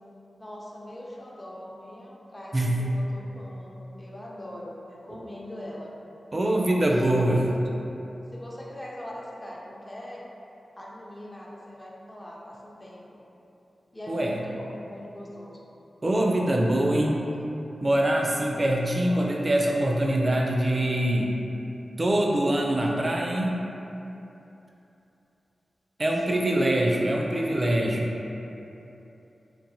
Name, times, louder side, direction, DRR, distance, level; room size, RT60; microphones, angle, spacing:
voice 1, 0.4-5.9 6.6-7.3 8.3-10.2 10.8-13.2 13.9-15.6 18.6-19.3 26.1-26.7 27.1-27.5, left 1 dB, 20° left, -4 dB, 0.5 m, -41 dB
voice 2, 2.5-2.8 6.3-7.4 14.1-14.4 16.0-17.2 17.8-21.4 22.0-23.6 26.0-28.1, right 1 dB, 40° right, -1 dB, 0.4 m, -24 dB
2.9 x 2.1 x 2.6 m, 2.9 s
cardioid pair, 50°, 0 cm